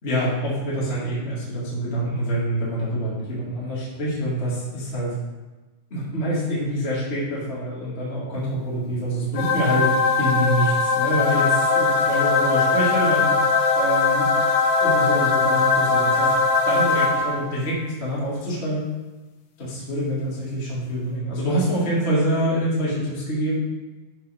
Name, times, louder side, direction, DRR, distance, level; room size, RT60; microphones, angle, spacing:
voice 1, 0.0-5.1 5.9-9.9 10.2-13.3 13.7-14.3 14.8-16.3 16.6-18.8 19.6-23.5, right 1 dB, 25° left, -8 dB, 1.6 m, -26 dB
sound 1, 9.4-17.6, left 4 dB, 85° left, 2.5 m, -20 dB
11.5 x 4.6 x 3.4 m, 1.2 s
omnidirectional pair, 4.0 m